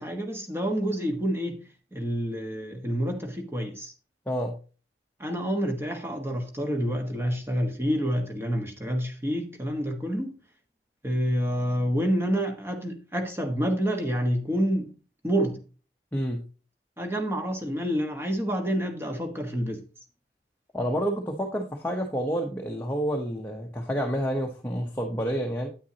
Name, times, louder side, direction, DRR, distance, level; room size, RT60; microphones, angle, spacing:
voice 1, 0.0-1.6 1.9-3.9 5.2-10.3 11.0-14.9 15.2-15.6 17.0-19.8, equal, 15° right, 1.4 m, -28 dB
voice 2, 16.1-16.4 20.7-25.7, equal, 10° left, 0.9 m, -29 dB
9.3 x 8.7 x 2.9 m
head